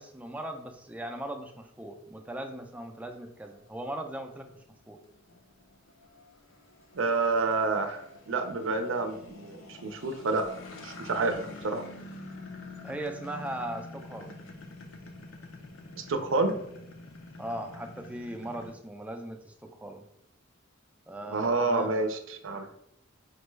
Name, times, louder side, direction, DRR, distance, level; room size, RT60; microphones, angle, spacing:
voice 1, 0.0-4.5 4.9-5.0 12.8-14.4 17.4-20.0 21.1-21.9, right 1 dB, 5° right, 4 dB, 0.3 m, -38 dB
sound 1, 2.6-18.7, left 2 dB, 80° left, 0.6 m, -47 dB
voice 2, 6.9-10.5 10.8-11.8 15.9-16.6 21.3-22.7, right 3 dB, 70° right, 6 dB, 0.5 m, -29 dB
5.1 x 2.2 x 3.1 m, 0.78 s
head